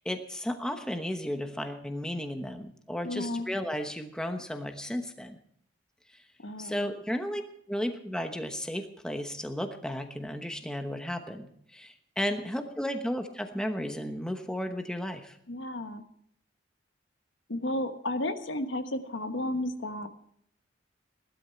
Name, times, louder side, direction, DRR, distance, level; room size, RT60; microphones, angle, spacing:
voice 1, 0.0-5.4 6.1-6.2 6.6-7.4 7.7-15.4, equal, 5° left, 5 dB, 1.1 m, -34 dB
voice 2, 3.0-3.5 6.4-6.9 15.5-16.0 17.5-20.1, left 1 dB, 80° left, 7 dB, 1.3 m, -33 dB
17.0 x 12.5 x 4.5 m, 0.67 s
head